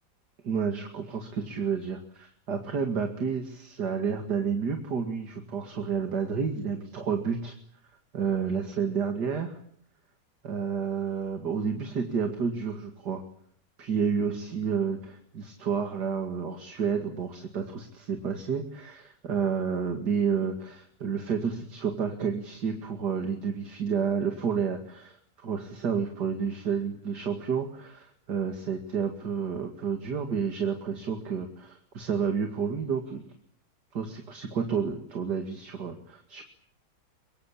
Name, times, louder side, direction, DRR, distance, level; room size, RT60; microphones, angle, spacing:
voice 1, 0.4-7.5 8.1-9.6 10.4-13.2 13.8-33.2 33.9-36.4, right 6 dB, 70° right, 5 dB, 2.8 m, -30 dB
24.0 x 23.5 x 8.6 m, 0.62 s
omnidirectional pair, 1.8 m